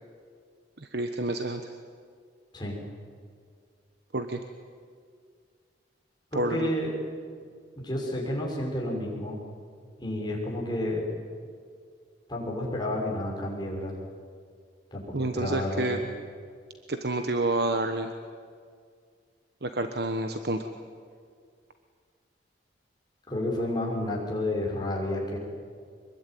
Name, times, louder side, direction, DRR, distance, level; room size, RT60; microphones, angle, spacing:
voice 1, 0.8-1.6 4.1-4.4 6.3-6.7 15.1-16.0 16.9-18.1 19.6-20.7, right 2 dB, 60° right, 7 dB, 1.2 m, -29 dB
voice 2, 6.3-6.9 7.8-9.4 10.0-11.1 12.3-13.9 14.9-16.0 23.3-25.4, left 1 dB, 25° left, -2 dB, 6.1 m, -30 dB
24.5 x 21.5 x 9.3 m, 2.1 s
head